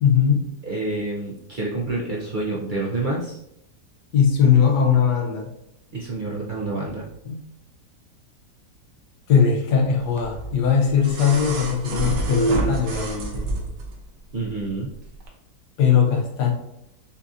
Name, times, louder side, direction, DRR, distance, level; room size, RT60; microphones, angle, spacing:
voice 1, 0.0-0.5 4.1-5.5 7.2-7.4 9.3-13.4 15.8-16.5, left 7 dB, 80° left, 2 dB, 1.3 m, -19 dB
voice 2, 0.6-3.4 5.9-7.1 14.3-14.9, right 2 dB, 65° right, -5 dB, 0.4 m, -28 dB
sound 1, 10.2-13.9 15.2-15.3, right 2 dB, 85° right, 1.4 m, -27 dB
6.7 x 2.5 x 2.6 m, 0.79 s
omnidirectional pair, 1.8 m